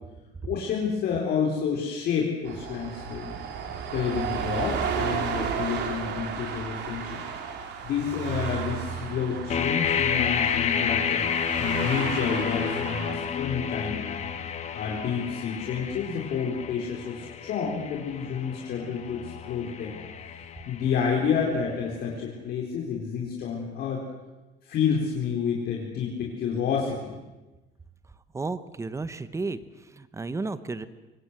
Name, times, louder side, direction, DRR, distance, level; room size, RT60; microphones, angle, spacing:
voice 1, 0.4-3.3 3.9-7.2 7.8-14.3 14.7-20.0 20.7-24.0 24.6-27.1, left 6 dB, 55° left, -2 dB, 4.3 m, -29 dB
sound 1, 2.5-13.2, right 7 dB, 60° right, 3.3 m, -33 dB
sound 2, 9.5-21.3, left 7 dB, 35° left, 1.8 m, -30 dB
voice 2, 28.3-30.9, right 3 dB, 15° right, 13 dB, 1.0 m, -33 dB
24.5 x 19.5 x 8.2 m, 1.1 s
cardioid pair, 155°, 20 cm